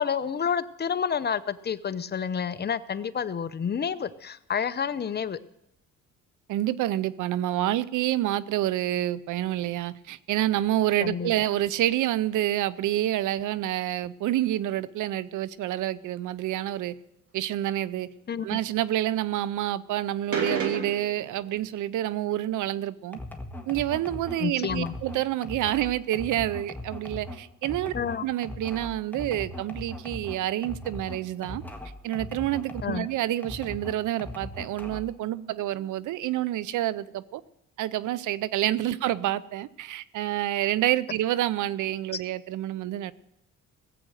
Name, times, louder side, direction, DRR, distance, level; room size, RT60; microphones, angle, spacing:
voice 1, 0.0-5.4 11.0-11.3 18.3-18.6 24.4-24.9 27.9-28.3 32.8-33.1 42.1-42.2, left 7 dB, 35° left, 0.7 m, -29 dB
voice 2, 6.5-17.0 17.3-18.1 18.4-23.2 23.7-27.9 28.2-31.6 32.0-37.4 37.8-43.1, right 13 dB, 80° right, 0.6 m, -28 dB
sound 1, 20.3-21.3, right 3 dB, 50° right, 2.7 m, -31 dB
sound 2, 23.1-33.1 33.4-35.2, left 1 dB, 5° left, 1.5 m, -39 dB
17.5 x 7.8 x 6.4 m
cardioid pair, 90°, 30 cm